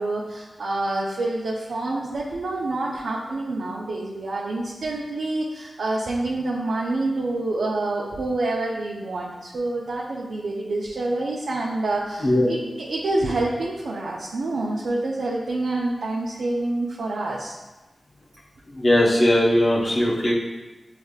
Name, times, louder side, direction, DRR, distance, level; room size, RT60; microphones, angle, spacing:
voice 1, 0.0-17.6, right 2 dB, 85° right, -4 dB, 0.5 m, -27 dB
voice 2, 18.7-20.3, left 1 dB, 55° left, -5 dB, 0.9 m, -19 dB
6.4 x 3.3 x 2.4 m, 1.1 s
cardioid pair, 50°, 0 cm